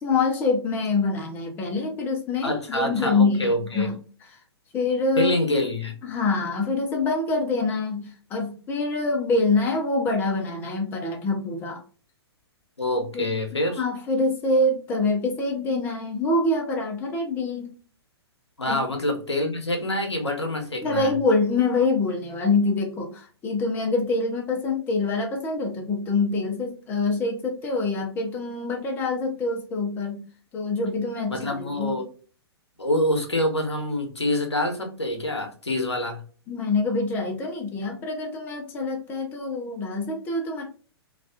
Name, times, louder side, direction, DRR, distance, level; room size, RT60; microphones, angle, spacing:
voice 1, 0.0-4.0 4.7-5.3 6.0-11.8 13.1-13.3 13.8-17.7 18.7-18.8 20.8-30.2 30.5-32.0 36.5-40.6, left 3 dB, 15° left, 2 dB, 0.4 m, -25 dB
voice 2, 2.4-3.9 5.2-5.9 12.8-13.8 18.6-21.1 31.3-32.1 32.8-36.2, left 1 dB, 85° left, 3 dB, 0.7 m, -26 dB
2.3 x 2.3 x 2.4 m, 0.40 s
figure-of-eight pair, 115°, 14 cm